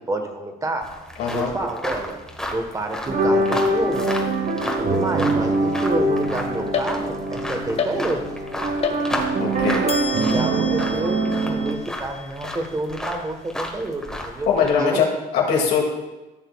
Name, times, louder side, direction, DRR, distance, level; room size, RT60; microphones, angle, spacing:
voice 1, 0.1-0.8 1.3-2.2 2.5-4.1 4.6-8.3 9.8-14.5 14.8-15.2, right 2 dB, 20° right, 5 dB, 1.2 m, -29 dB
sound 1, 0.8-14.7, left 1 dB, 5° left, 1.3 m, -33 dB
voice 2, 1.2-1.5 9.4-9.9 14.5-15.1 15.3-15.8, left 6 dB, 85° left, -1 dB, 2.3 m, -21 dB
sound 2, 3.1-11.7, right 2 dB, 55° right, 1.2 m, -23 dB
sound 3, 6.7-7.4 7.8-8.4 8.8-9.5 9.9-13.3, left 5 dB, 35° left, 0.8 m, -31 dB
14.5 x 6.6 x 2.4 m, 1.1 s
cardioid pair, 110°, 17 cm